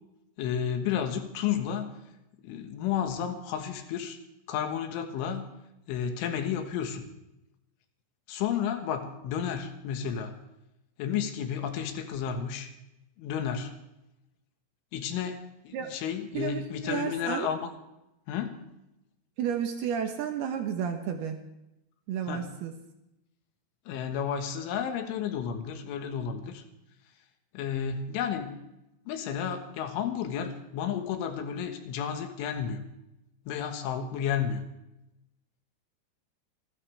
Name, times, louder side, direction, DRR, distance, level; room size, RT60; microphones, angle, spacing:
voice 1, 0.4-1.9 2.4-4.2 4.5-5.5 5.9-7.1 8.3-10.4 11.0-12.7 13.2-13.7 14.9-15.4 15.7-17.7 18.3-18.6 22.3-22.5 23.9-26.6 27.5-28.5 29.1-32.8 33.5-34.6, left 8 dB, 85° left, 6 dB, 3.9 m, -32 dB
voice 2, 16.3-17.5 19.4-21.4 22.1-22.7, right 8 dB, 70° right, 5 dB, 2.7 m, -32 dB
28.0 x 12.5 x 3.4 m, 0.89 s
omnidirectional pair, 5.5 m